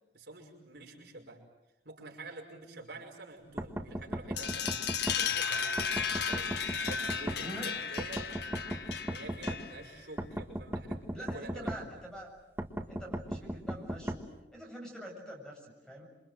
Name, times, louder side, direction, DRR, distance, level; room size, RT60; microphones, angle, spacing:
voice 1, 0.1-1.4 1.8-4.8 5.1-6.5 6.9-8.3 9.0-12.0, right 2 dB, 65° right, 1 dB, 5.5 m, -48 dB
sound 1, 3.6-5.2 5.8-7.4 8.0-9.6 10.2-11.8 12.6-14.2, equal, 15° right, 1.8 m, -36 dB
sound 2, 4.4-9.9, left 6 dB, 65° left, 1.4 m, -34 dB
voice 2, 7.4-7.7 11.1-12.3 12.9-14.3 14.5-16.1, equal, 5° left, 0 dB, 7.3 m, -45 dB
28.0 x 25.0 x 7.8 m, 0.96 s
head